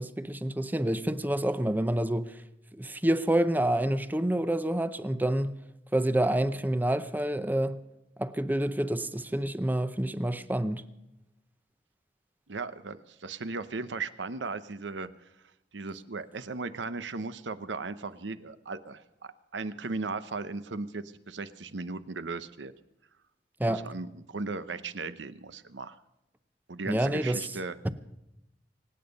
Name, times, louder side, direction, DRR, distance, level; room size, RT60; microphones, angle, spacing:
voice 1, 0.0-2.4 2.7-5.5 5.9-7.8 8.2-10.9 23.6-23.9 26.9-27.5, right 1 dB, 10° right, 0.6 m, -28 dB
voice 2, 12.5-15.1 15.7-22.7 23.7-26.0 26.7-27.7, right 3 dB, 85° right, 0.9 m, -37 dB
25.0 x 9.1 x 5.3 m
head